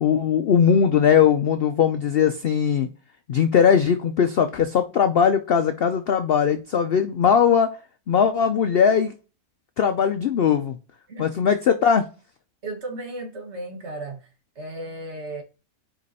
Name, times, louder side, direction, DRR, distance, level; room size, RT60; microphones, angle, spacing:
voice 1, 0.0-2.9 3.3-7.7 8.1-9.1 9.8-10.8 11.2-12.1, left 7 dB, 65° left, 0.6 m, -19 dB
voice 2, 12.6-14.3 14.5-15.4, right 2 dB, 50° right, 1.5 m, -35 dB
5.2 x 5.0 x 4.1 m
omnidirectional pair, 1.6 m